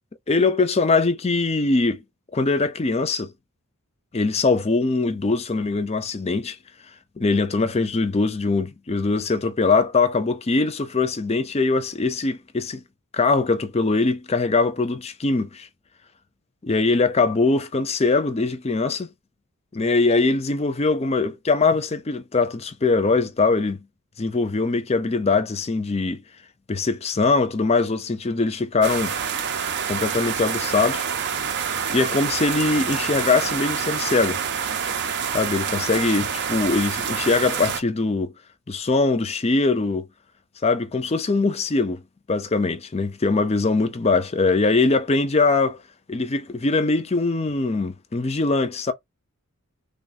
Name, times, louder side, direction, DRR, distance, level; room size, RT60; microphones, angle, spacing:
voice 1, 0.3-2.0 2.3-3.3 4.1-6.6 7.2-12.8 13.1-15.7 16.6-19.1 19.7-23.8 24.2-26.2 26.7-29.2 29.9-31.1 31.9-34.4 35.3-38.3 38.7-40.1 40.6-42.0 42.3-45.8 46.1-48.9, left 3 dB, 30° left, 0.5 m, -22 dB
sound 1, 28.8-37.8, right 7 dB, 55° right, 0.6 m, -27 dB
3.3 x 2.3 x 4.1 m
head